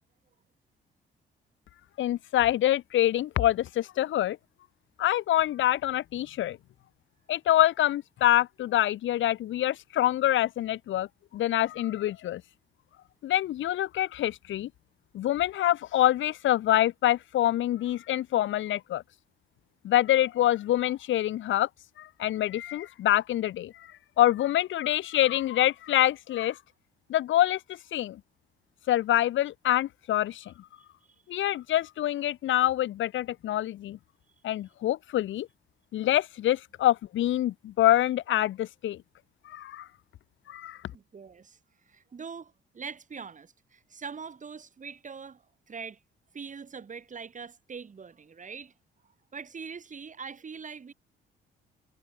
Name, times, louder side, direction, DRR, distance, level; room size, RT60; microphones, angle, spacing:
voice 1, 2.0-4.4 5.0-6.6 7.3-11.1 11.3-12.4 13.2-14.7 15.1-19.0 19.8-21.7 22.0-23.9 24.2-26.6 27.1-27.6 27.9-28.2 28.9-30.5 31.3-34.0 34.4-35.5 35.9-39.0 39.4-39.9 40.5-40.8, left 13 dB, 75° left, 1.5 m, -26 dB
voice 2, 30.8-31.1 40.9-41.6 41.9-46.0 46.3-48.7 49.0-50.9, right 6 dB, 40° right, 4.5 m, -43 dB
cardioid pair, 90°, 20 cm